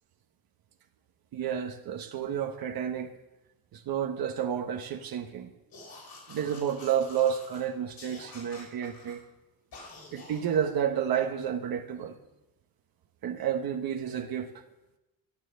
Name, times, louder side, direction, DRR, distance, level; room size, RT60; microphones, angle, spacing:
voice 1, 1.3-3.1 3.7-5.5 6.3-9.2 10.1-12.1 13.2-14.5, right 9 dB, 80° right, 1.2 m, -30 dB
sound 1, 5.7-7.6 8.0-9.2 9.7-10.5, left 3 dB, 80° left, 6.1 m, -48 dB
12.5 x 12.0 x 6.5 m
cardioid pair, 115°, 36 cm